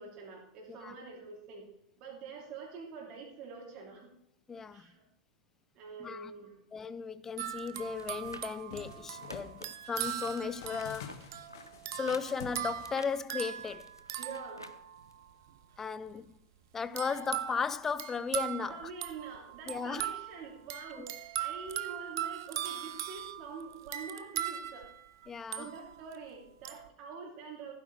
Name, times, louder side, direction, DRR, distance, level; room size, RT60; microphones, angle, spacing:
voice 1, 0.0-1.7 2.0-4.1 4.7-5.0 5.7-6.6 14.2-14.6 17.1-17.2 18.7-24.9 25.6-27.7, right 5 dB, 40° right, 3.1 m, -46 dB
voice 2, 4.5-4.9 6.0-6.3 6.7-11.2 11.9-13.9 15.8-16.4 16.7-18.8 19.7-20.1 21.0-21.1 25.3-25.7, left 5 dB, 15° left, 0.5 m, -36 dB
sound 1, 7.4-15.2 17.0-26.2 26.6-26.9, right 11 dB, 55° right, 0.7 m, -40 dB
sound 2, 7.7-8.4 8.7-9.5 10.0-13.2, left 7 dB, 55° left, 1.5 m, -49 dB
sound 3, 7.9-9.9 10.2-14.8 15.1-15.2, left 1 dB, 85° left, 0.6 m, -50 dB
15.5 x 9.3 x 3.3 m
figure-of-eight pair, 90°, 2 cm